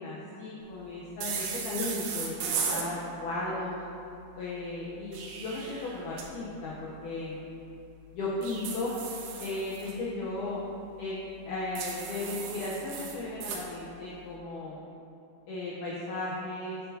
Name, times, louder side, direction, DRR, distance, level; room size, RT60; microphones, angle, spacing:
voice 1, 0.0-3.8 4.4-7.4 8.1-8.9 9.4-10.6 11.0-11.2 11.5-14.8 15.5-16.8, left 2 dB, 90° left, -5 dB, 1.8 m, -35 dB
sound 1, 1.2-2.9 4.9-6.3 8.4-9.9 11.8-13.6, right 5 dB, 85° right, 2.9 m, -36 dB
8.1 x 8.0 x 2.7 m, 2.8 s
omnidirectional pair, 4.6 m